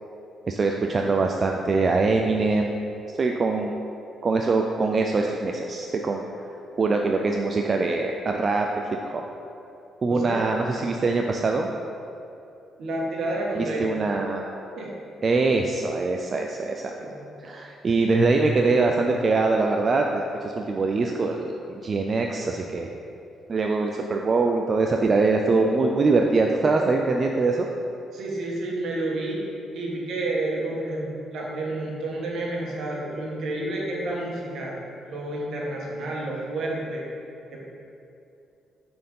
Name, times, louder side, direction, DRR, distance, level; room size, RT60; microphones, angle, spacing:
voice 1, 0.5-2.8 3.2-3.7 4.2-6.2 6.8-9.2 10.0-11.7 13.6-14.5 15.2-22.9 23.5-27.7, right 3 dB, 40° right, 2 dB, 0.4 m, -23 dB
voice 2, 10.1-10.4 12.8-13.8 14.8-14.9 17.0-17.3 28.1-29.4 29.7-34.7 35.0-37.0 37.5-37.6, right 2 dB, 70° right, -3 dB, 1.6 m, -30 dB
6.4 x 4.4 x 5.5 m, 2.7 s
cardioid pair, 90°, 0 cm